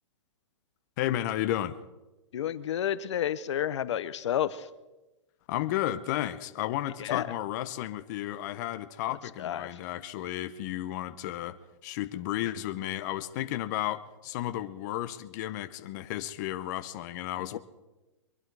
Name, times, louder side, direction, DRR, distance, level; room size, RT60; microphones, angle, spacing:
voice 1, 1.0-1.8 5.5-11.6 11.8-17.6, left 13 dB, 35° left, 10 dB, 0.8 m, -33 dB
voice 2, 2.3-4.7 7.0-7.2 9.4-9.7 17.4-17.6, left 10 dB, 65° left, 15 dB, 0.8 m, -30 dB
23.5 x 11.5 x 4.7 m, 1.1 s
hypercardioid pair, 160°, 16 cm